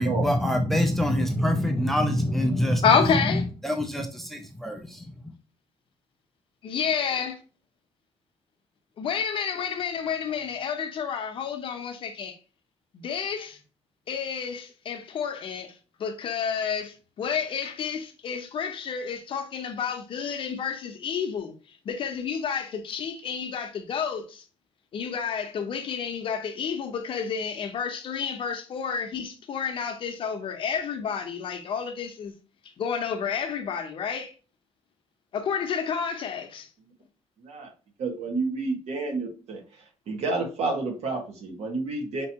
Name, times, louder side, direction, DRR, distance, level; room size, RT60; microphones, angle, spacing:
voice 1, 0.0-2.9 3.3-5.1, left 1 dB, ahead, 0.5 m, -25 dB
voice 2, 2.8-3.4 6.6-7.4 9.0-12.4 12.9-13.6 14.1-15.7 16.0-21.5 21.8-24.4 24.9-32.3 32.8-34.3 35.3-36.7, left 6 dB, 50° left, 0.7 m, -29 dB
voice 3, 37.4-37.7 38.0-42.3, right 3 dB, 65° right, 1.5 m, -30 dB
5.3 x 2.9 x 2.8 m
cardioid pair, 160°, 12 cm